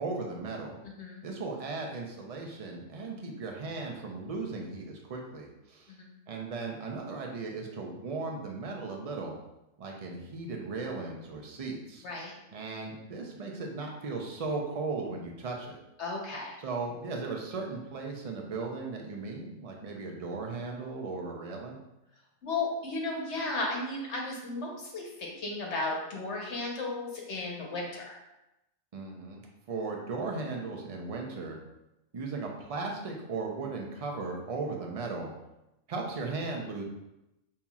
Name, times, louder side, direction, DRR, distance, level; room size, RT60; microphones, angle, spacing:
voice 1, 0.0-0.8 1.2-5.9 6.3-9.3 9.8-12.1 12.5-15.8 16.6-21.8 28.9-29.4 29.7-31.6 32.1-35.3 35.9-36.8, right 3 dB, 40° right, 0 dB, 0.5 m, -37 dB
voice 2, 0.8-1.2 5.9-6.1 12.0-12.3 16.0-16.6 22.4-28.2, left 2 dB, 60° left, -1 dB, 1.1 m, -34 dB
5.5 x 2.9 x 2.3 m, 0.91 s
omnidirectional pair, 1.3 m